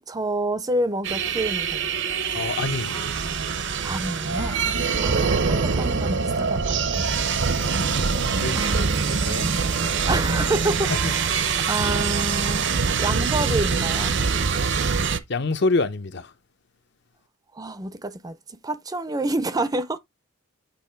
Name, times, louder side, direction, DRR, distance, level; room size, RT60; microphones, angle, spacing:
voice 1, 0.1-2.0 3.8-4.6 5.0-7.1 8.5-9.6 10.0-12.7 13.0-14.1 17.5-18.4 18.6-20.0, right 2 dB, 15° right, 0.5 m, -28 dB
sound 1, 1.0-15.2, right 5 dB, 55° right, 0.7 m, -24 dB
voice 2, 2.3-3.1 7.6-8.1 8.4-9.5 10.9-11.1 14.5-14.9 15.3-16.3, left 3 dB, 50° left, 0.7 m, -28 dB
8.5 x 3.0 x 4.4 m
head